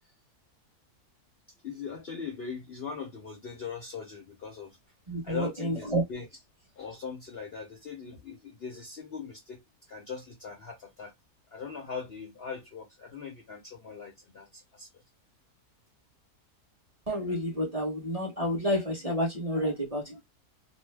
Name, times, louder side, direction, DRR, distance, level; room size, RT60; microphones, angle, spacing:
voice 1, 1.6-4.8 5.2-6.3 6.8-11.1 11.5-14.9, left 6 dB, 55° left, 0.7 m, -40 dB
voice 2, 5.1-6.0 17.1-20.2, equal, 30° right, 1.0 m, -30 dB
2.7 x 2.1 x 3.3 m
omnidirectional pair, 1.6 m